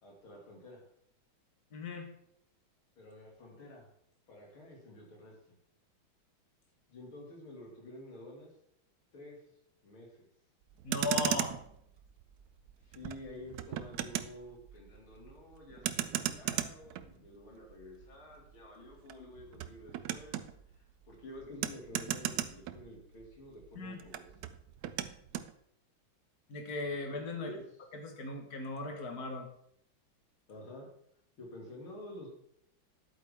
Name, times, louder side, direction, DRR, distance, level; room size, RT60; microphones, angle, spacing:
voice 1, 0.0-0.8 3.0-3.9 4.3-5.4 6.9-8.5 9.1-9.4 9.8-10.2 12.8-20.4 20.7-24.3 27.3-27.6 30.5-30.9 31.4-32.3, left 1 dB, 75° left, -1 dB, 3.4 m, -50 dB
voice 2, 1.7-2.1 10.8-11.5 23.8-24.0 26.5-27.6 27.9-29.5, left 3 dB, 50° left, 4 dB, 1.9 m, -37 dB
Motor vehicle (road), 10.7-23.3 23.6-25.5, right 11 dB, 80° right, 0.8 m, -38 dB
11.0 x 8.3 x 3.6 m, 0.71 s
omnidirectional pair, 2.3 m